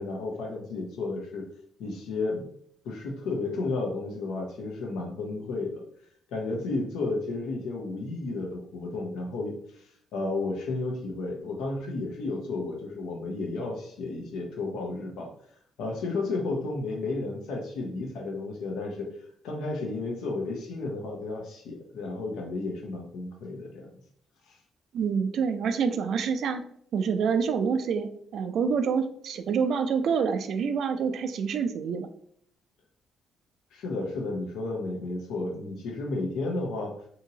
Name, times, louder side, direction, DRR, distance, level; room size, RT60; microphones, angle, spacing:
voice 1, 0.0-1.4 1.8-2.4 2.8-5.8 6.3-9.8 10.1-15.3 15.8-19.1 19.4-23.9 24.5-24.6 33.7-36.9, left 3 dB, 90° left, 1 dB, 0.7 m, -32 dB
voice 2, 24.9-26.6 26.9-32.1, right 6 dB, 70° right, 8 dB, 0.3 m, -27 dB
2.7 x 2.7 x 2.7 m, 0.66 s
cardioid pair, 90°, 0 cm